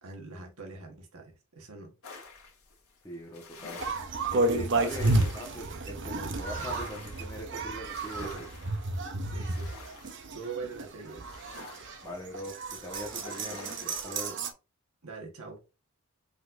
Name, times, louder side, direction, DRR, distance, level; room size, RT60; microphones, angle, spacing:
voice 1, 0.0-1.9 7.9-8.4 9.3-10.0 10.3-11.2 15.0-15.6, right 4 dB, 75° right, 1.4 m, -43 dB
sound 1, 2.0-14.1, left 3 dB, 70° left, 1.5 m, -48 dB
voice 2, 3.0-3.8 4.3-8.3 12.0-12.6 12.8-14.4, equal, 15° left, 1.2 m, -41 dB
sound 2, 3.8-14.5, right 2 dB, 55° right, 0.8 m, -32 dB
5.2 x 3.9 x 2.6 m
head